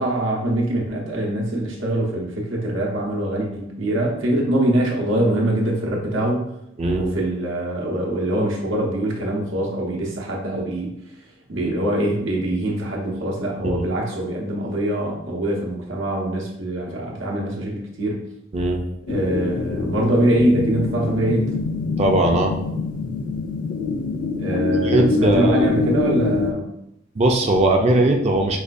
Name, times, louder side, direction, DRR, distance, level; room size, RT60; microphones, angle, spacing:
voice 1, 0.0-6.5 7.0-10.9 11.5-18.2 19.1-21.6 24.4-26.7, right 1 dB, 85° right, -2 dB, 0.9 m, -23 dB
sound 1, 19.1-26.5, left 3 dB, 45° left, 0.3 m, -24 dB
voice 2, 22.0-22.5 24.8-25.7 27.1-28.6, right 1 dB, 35° right, 2 dB, 0.4 m, -19 dB
4.8 x 2.3 x 2.5 m, 0.81 s
head